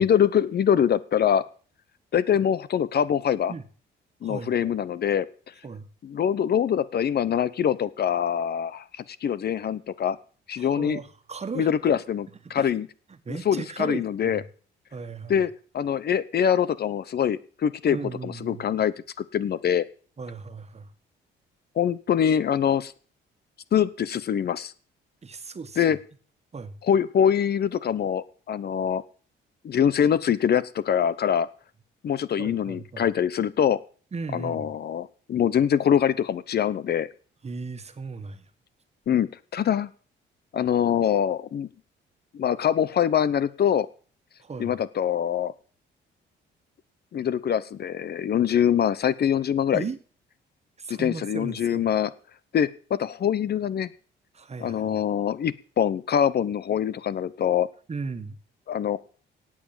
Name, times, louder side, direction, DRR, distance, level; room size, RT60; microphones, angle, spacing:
voice 1, 0.0-1.4 2.1-3.5 4.2-5.3 6.0-8.8 9.2-10.2 10.5-11.0 11.5-12.9 13.4-14.4 15.3-18.0 18.2-19.8 21.8-22.9 23.7-24.7 25.8-26.0 26.8-29.0 29.6-31.5 32.0-33.8 34.3-37.1 39.1-39.9 40.5-41.7 42.3-43.9 44.6-45.5 47.1-49.9 50.9-52.1 52.5-53.9 54.6-57.7 58.7-59.0, left 8 dB, 55° left, 0.9 m, -24 dB
voice 2, 4.2-4.7 5.6-5.9 10.6-11.7 12.5-12.8 13.2-14.4 14.9-15.4 17.9-18.7 20.2-20.9 25.2-26.0 26.5-26.8 32.4-33.0 34.1-34.7 37.4-38.4 44.4-44.7 49.7-50.0 50.8-51.8 54.3-55.0 57.9-58.4, right 4 dB, 35° right, 1.6 m, -36 dB
17.5 x 7.4 x 7.4 m
cardioid pair, 90°, 20 cm